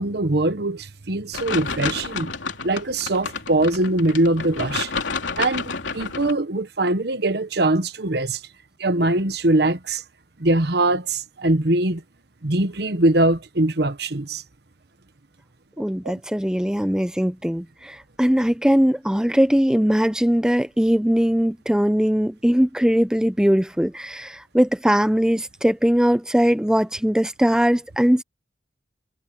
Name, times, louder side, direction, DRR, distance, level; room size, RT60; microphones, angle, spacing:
voice 1, 0.0-2.3 2.6-4.9 5.4-8.4 8.8-10.0 10.4-12.0 12.4-14.4 16.0-16.1, right 2 dB, 60° right, 1.2 m, -22 dB
sound 1, 1.3-6.3, left 4 dB, 90° left, 3.1 m, -30 dB
voice 2, 15.8-28.2, equal, 5° right, 0.5 m, -20 dB
head